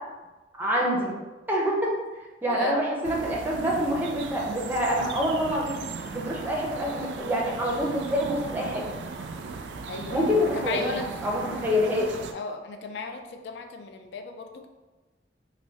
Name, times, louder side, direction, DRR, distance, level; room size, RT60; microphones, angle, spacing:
voice 1, 0.6-1.1 1.5-1.9 2.4-5.8 6.1-8.8 10.1-11.0 11.2-12.1, equal, 10° right, -3 dB, 0.5 m, -26 dB
voice 2, 2.5-2.8 9.9-11.1 12.3-14.7, left 4 dB, 70° left, 5 dB, 0.4 m, -35 dB
sound 1, 3.0-12.3, right 4 dB, 85° right, 0.3 m, -37 dB
3.2 x 2.7 x 2.7 m, 1.2 s
head